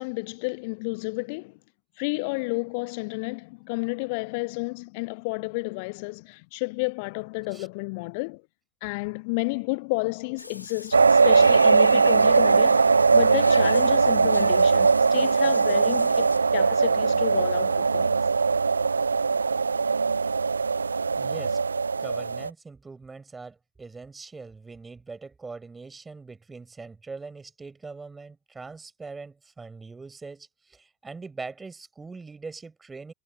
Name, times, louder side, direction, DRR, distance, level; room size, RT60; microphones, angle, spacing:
voice 1, 0.0-1.6 2.0-8.4 8.8-18.2, left 30 dB, 45° left, 0.5 m, -31 dB
Water / Bathtub (filling or washing), 10.4-16.4, left 2 dB, 85° left, 4.2 m, -38 dB
sound 1, 10.9-22.5, right 4 dB, 75° right, 0.4 m, -20 dB
voice 2, 21.2-21.6 22.0-33.1, right 4 dB, 10° right, 7.2 m, -42 dB
figure-of-eight pair, 90°, 0 cm